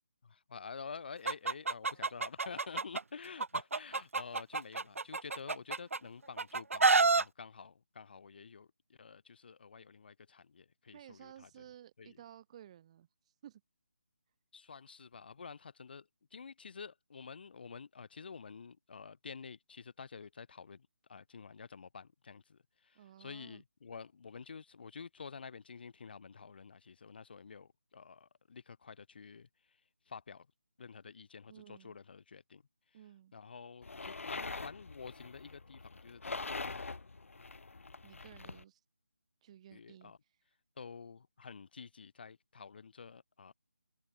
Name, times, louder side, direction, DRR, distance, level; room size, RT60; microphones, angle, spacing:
voice 1, 0.2-11.6 12.0-12.2 14.5-29.8 30.1-30.5 30.8-32.6 33.3-36.5 39.7-40.2 40.8-43.5, left 5 dB, 45° left, 2.8 m, -49 dB
Chicken rooster, 1.3-3.0 3.4-6.0 6.4-7.2, right 4 dB, 80° right, 0.4 m, -29 dB
voice 2, 10.9-13.6 22.9-23.6 31.5-32.0 32.9-33.3 38.0-38.8 39.4-40.1, right 11 dB, 25° right, 3.4 m, -55 dB
sound 1, 33.8-38.6, left 3 dB, 75° left, 0.6 m, -44 dB
figure-of-eight pair, 155°, 7 cm